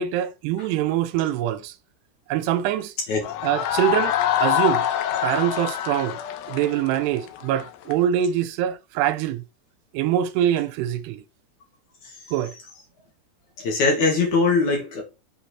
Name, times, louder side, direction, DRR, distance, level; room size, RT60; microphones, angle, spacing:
voice 1, 0.0-1.7 2.3-2.9 3.4-4.9 5.2-6.2 6.5-9.4 9.9-11.2 12.3-12.5, right 11 dB, 85° right, 2.6 m, -24 dB
sound 1, 3.2-8.0, left 11 dB, 75° left, 2.4 m, -25 dB
voice 2, 12.0-12.6 13.6-15.0, left 4 dB, 60° left, 2.5 m, -22 dB
8.1 x 4.1 x 4.1 m
omnidirectional pair, 4.7 m